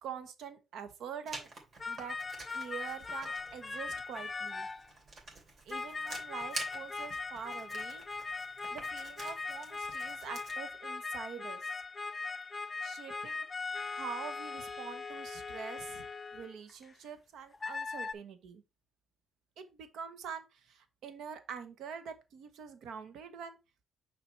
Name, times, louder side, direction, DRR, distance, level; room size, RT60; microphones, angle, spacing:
voice 1, 0.0-1.5 1.9-2.2 2.5-4.7 5.6-8.0 8.7-11.7 12.8-16.1 16.3-18.6 19.6-23.6, right 7 dB, 75° right, 1.1 m, -45 dB
Writing, 1.3-10.6, right 3 dB, 45° right, 2.8 m, -48 dB
sound 1, 1.8-4.9 5.7-16.9 17.5-18.1, left 4 dB, 30° left, 0.4 m, -40 dB
6.1 x 4.0 x 4.4 m
cardioid pair, 90°, 0 cm